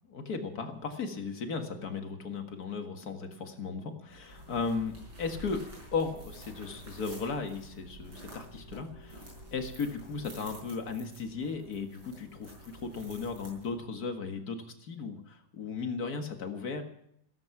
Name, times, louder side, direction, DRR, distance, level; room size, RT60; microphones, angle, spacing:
voice 1, 0.1-5.6 5.9-9.2 9.5-16.8, left 4 dB, 50° left, 5 dB, 2.1 m, -36 dB
sound 1, 4.1-13.9, equal, 80° right, 6.3 m, -49 dB
15.0 x 14.0 x 5.9 m, 0.71 s
omnidirectional pair, 2.1 m